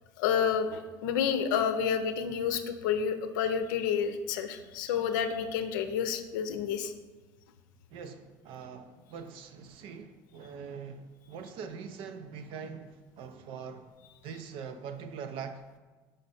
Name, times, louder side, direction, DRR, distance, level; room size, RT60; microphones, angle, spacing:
voice 1, 0.2-6.9, left 7 dB, 80° left, 0.6 m, -29 dB
voice 2, 7.9-13.9 14.2-15.6, right 6 dB, 60° right, 0.6 m, -43 dB
5.3 x 5.1 x 4.2 m
supercardioid pair, 95°, 10 cm